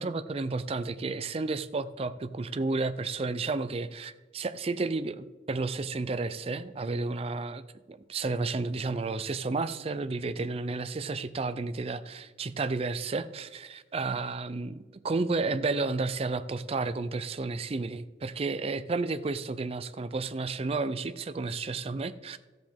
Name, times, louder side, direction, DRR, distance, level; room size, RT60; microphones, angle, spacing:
voice 1, 0.0-7.6 7.9-22.4, right 3 dB, 30° right, 0.4 m, -32 dB
14.0 x 7.9 x 3.5 m
head